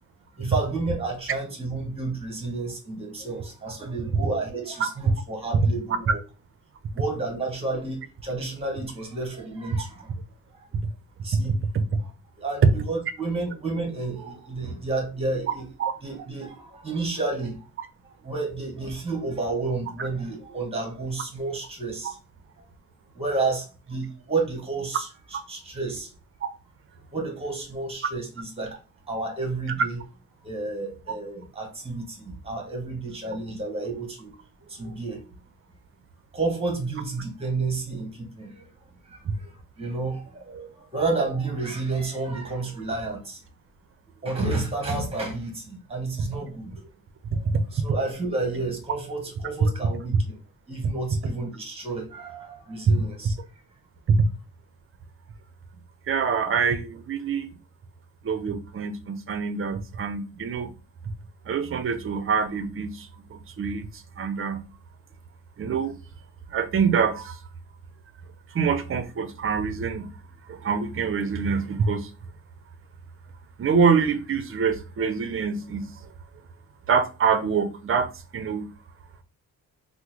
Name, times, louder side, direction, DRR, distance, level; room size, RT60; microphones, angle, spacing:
voice 1, 0.3-6.2 6.9-10.1 11.2-11.5 12.4-15.6 16.0-17.6 18.0-22.2 23.1-25.1 25.5-26.1 27.1-28.8 29.1-30.0 30.4-34.3 34.7-35.3 36.3-38.7 39.0-39.5 39.8-43.4 44.2-46.9 47.7-50.4 50.7-53.3, right 3 dB, 15° right, 1.0 m, -31 dB
voice 2, 11.3-12.0 12.6-12.7 15.8-15.9 20.0-20.1 22.0-22.1 25.3-25.4 39.2-39.3 47.3-47.6 49.6-49.7 52.9-53.0 54.1-54.2 56.1-57.6 58.2-60.7 61.5-64.7 65.6-65.9 66.5-67.4 68.5-70.1 70.5-72.1 73.6-76.1 76.9-78.7, right 5 dB, 35° right, 0.5 m, -25 dB
3.6 x 2.0 x 3.0 m
cardioid pair, 105°, 37 cm